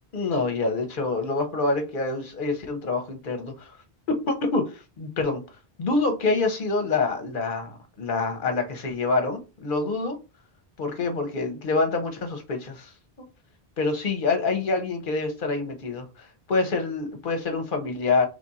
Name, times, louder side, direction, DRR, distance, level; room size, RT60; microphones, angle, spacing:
voice 1, 0.1-3.8 4.1-5.4 5.8-10.2 10.8-12.9 13.8-18.3, left 3 dB, 55° left, 1.0 m, -26 dB
3.3 x 2.5 x 4.0 m
omnidirectional pair, 1.0 m